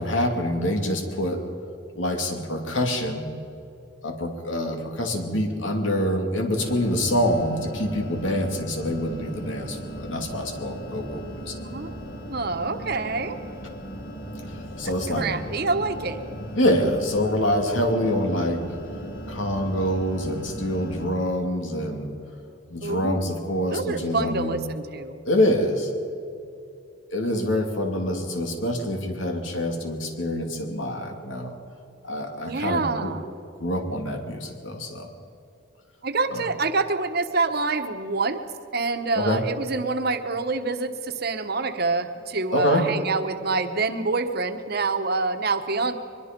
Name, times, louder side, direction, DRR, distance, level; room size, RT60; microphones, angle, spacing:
voice 1, 0.0-1.4 1.9-3.3 4.0-11.6 14.5-15.3 16.6-18.6 19.3-22.1 22.7-24.6 25.3-25.9 27.1-31.5 32.0-33.2 33.6-35.1 36.3-36.5 39.1-39.4 42.5-42.9, left 1 dB, 90° left, 3 dB, 2.8 m, -26 dB
sound 1, 6.6-21.1, equal, 55° left, 2.3 m, -37 dB
voice 2, 12.3-13.4 15.1-16.2 22.8-23.3 23.7-25.2 32.4-33.2 36.0-46.0, right 3 dB, 55° right, 8 dB, 1.2 m, -26 dB
23.5 x 21.5 x 5.3 m, 2.6 s
head